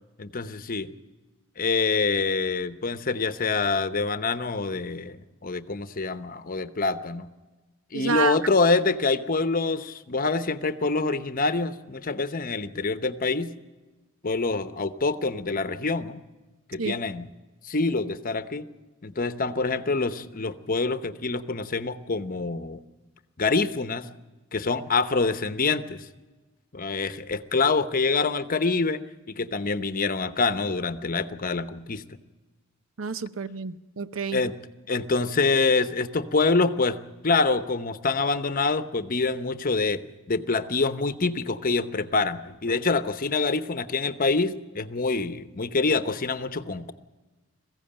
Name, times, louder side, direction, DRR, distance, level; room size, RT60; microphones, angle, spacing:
voice 1, 0.2-0.9 1.6-7.3 7.9-13.5 14.2-16.2 16.7-17.3 17.6-18.6 19.0-22.8 23.4-24.1 24.5-26.0 26.7-29.0 29.3-32.0 34.3-34.5 34.9-40.0 40.3-46.9, left 3 dB, 45° left, 0.9 m, -26 dB
voice 2, 7.9-8.4 16.8-16.9 33.0-34.4, right 5 dB, 75° right, 0.7 m, -29 dB
21.5 x 15.5 x 8.9 m
head